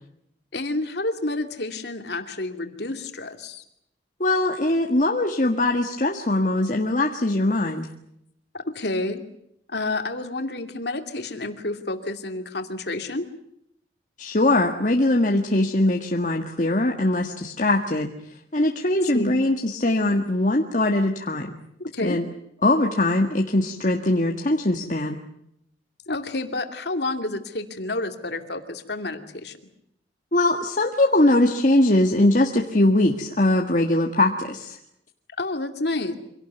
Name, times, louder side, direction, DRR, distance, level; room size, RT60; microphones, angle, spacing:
voice 1, 0.5-3.6 8.5-9.2 9.7-13.3 19.1-19.4 21.8-22.2 26.1-29.6 35.4-36.1, left 2 dB, 65° left, 6 dB, 2.6 m, -29 dB
voice 2, 4.2-7.9 14.2-18.1 18.5-21.6 22.0-22.3 22.6-25.2 30.3-34.8, left 1 dB, 45° left, 2 dB, 1.7 m, -21 dB
25.5 x 18.0 x 9.4 m, 0.75 s
head